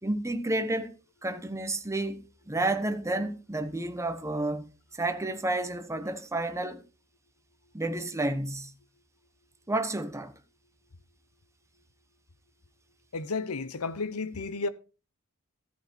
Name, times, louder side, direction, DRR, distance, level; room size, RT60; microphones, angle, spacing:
voice 1, 0.0-6.8 7.7-8.7 9.7-10.3, right 2 dB, 15° right, 1.1 m, -31 dB
voice 2, 13.1-14.7, left 3 dB, 80° left, 1.0 m, -32 dB
13.5 x 8.2 x 4.5 m
head